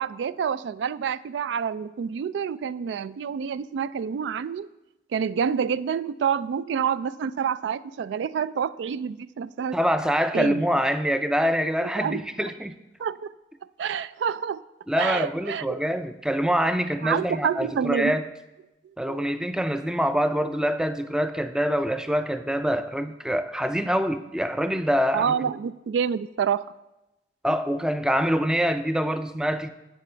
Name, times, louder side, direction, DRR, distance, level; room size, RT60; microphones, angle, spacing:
voice 1, 0.0-4.7 5.1-9.8 10.3-10.7 12.0-12.2 13.0-13.3 13.8-14.6 14.9-15.8 17.0-18.2 19.1-19.3 25.1-26.6, right 7 dB, 80° right, 0.3 m, -28 dB
voice 2, 9.7-12.7 14.9-18.2 19.0-25.3 27.4-29.7, equal, 5° right, 0.3 m, -25 dB
10.5 x 8.3 x 4.4 m
head